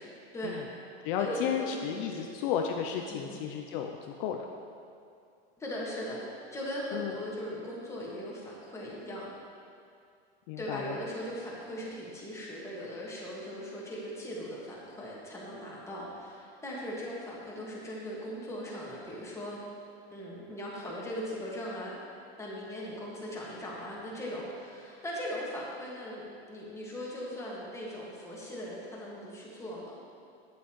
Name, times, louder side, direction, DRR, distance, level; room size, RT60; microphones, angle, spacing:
voice 1, 0.3-0.6 1.2-2.3 3.1-3.4 5.6-6.2 6.5-9.3 10.6-19.6 20.1-21.9 22.4-30.0, equal, 10° left, -5 dB, 1.8 m, -39 dB
voice 2, 1.0-4.5 6.9-7.2 10.5-11.0, left 8 dB, 60° left, 3 dB, 0.6 m, -33 dB
8.4 x 8.1 x 3.1 m, 2.4 s
supercardioid pair, 120°, 32 cm